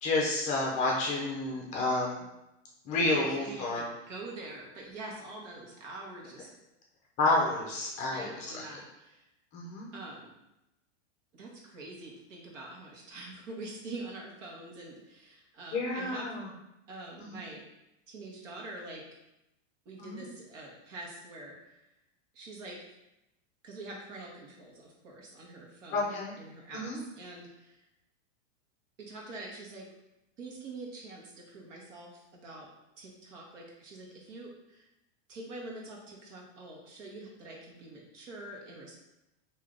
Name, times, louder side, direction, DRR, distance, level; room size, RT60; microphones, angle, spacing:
voice 1, 0.0-2.2 2.8-3.9 7.2-8.6 9.5-9.9 15.7-16.5 17.2-17.4 20.0-20.2 25.9-26.3 26.7-27.0, left 2 dB, 20° left, -2 dB, 0.4 m, -30 dB
voice 2, 3.1-6.5 8.1-9.2 9.9-10.3 11.3-16.4 16.9-17.6 18.1-19.0 19.8-21.8 22.3-22.8 23.6-26.9 27.2-27.8 29.0-29.9 30.4-32.7 33.0-34.8 35.3-39.0, right 2 dB, 80° right, -2 dB, 1.4 m, -45 dB
3.3 x 2.8 x 3.7 m, 0.91 s
supercardioid pair, 160°, 37 cm